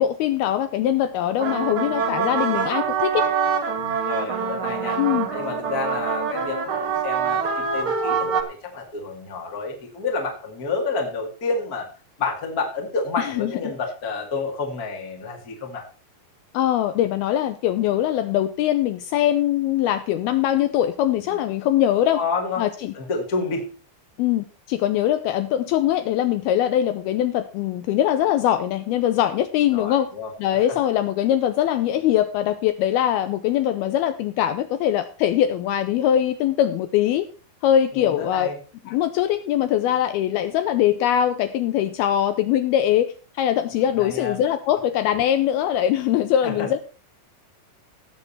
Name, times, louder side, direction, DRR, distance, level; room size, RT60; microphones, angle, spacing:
voice 1, 0.0-3.3 5.0-5.3 13.2-13.7 16.5-22.2 22.6-22.9 24.2-30.1 30.4-37.3 37.6-38.5 38.9-46.8, left 11 dB, 80° left, 10 dB, 2.4 m, -22 dB
sound 1, 1.3-8.4, right 6 dB, 55° right, 1.4 m, -25 dB
voice 2, 4.0-5.0 5.3-11.9 12.2-15.8 21.3-21.4 22.1-22.6 22.9-23.7 29.7-30.3 37.9-38.6 43.7-44.4 46.4-46.7, left 4 dB, 35° left, 1 dB, 1.4 m, -29 dB
18.0 x 6.7 x 4.2 m, 0.36 s
omnidirectional pair, 4.9 m